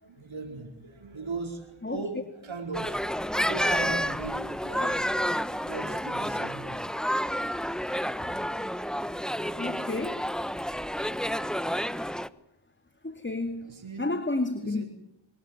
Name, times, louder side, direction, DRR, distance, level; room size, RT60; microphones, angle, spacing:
voice 1, 0.0-5.1 5.3-6.8 13.6-14.1 14.6-14.9, right 3 dB, 75° right, 2 dB, 5.0 m, -39 dB
sound 1, 2.7-12.3, equal, ahead, 1.0 m, -30 dB
voice 2, 9.6-10.2 13.0-14.8, left 2 dB, 25° left, 9 dB, 2.1 m, -31 dB
24.0 x 19.0 x 9.7 m, 0.80 s
cardioid pair, 45°, 48 cm